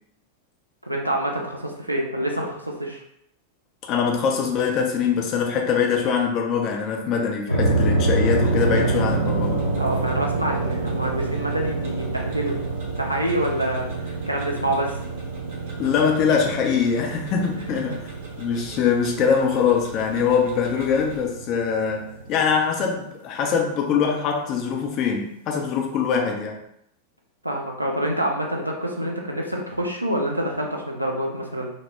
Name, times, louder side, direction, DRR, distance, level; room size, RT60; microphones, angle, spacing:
voice 1, 0.8-3.0 9.8-12.6 13.0-15.0 27.4-31.7, right 1 dB, 85° right, 0 dB, 0.4 m, -27 dB
voice 2, 3.9-9.6 15.8-18.0 18.4-26.6, left 6 dB, 35° left, 1 dB, 0.5 m, -23 dB
sound 1, 7.5-22.7, right 3 dB, 90° left, 0.5 m, -27 dB
Tick-tock, 8.4-21.2, right 4 dB, 50° right, 0.7 m, -44 dB
2.1 x 2.0 x 3.3 m, 0.74 s
figure-of-eight pair, 90°, 0 cm